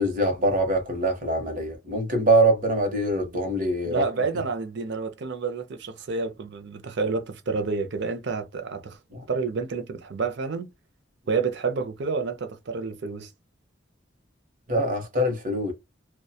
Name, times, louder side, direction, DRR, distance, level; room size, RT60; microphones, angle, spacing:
voice 1, 0.0-4.0 9.1-9.2 14.7-15.7, right 1 dB, 45° right, 0.9 m, -23 dB
voice 2, 3.8-9.0 9.3-10.7 11.3-13.3, right 4 dB, 60° right, 0.5 m, -29 dB
2.7 x 2.3 x 2.2 m
head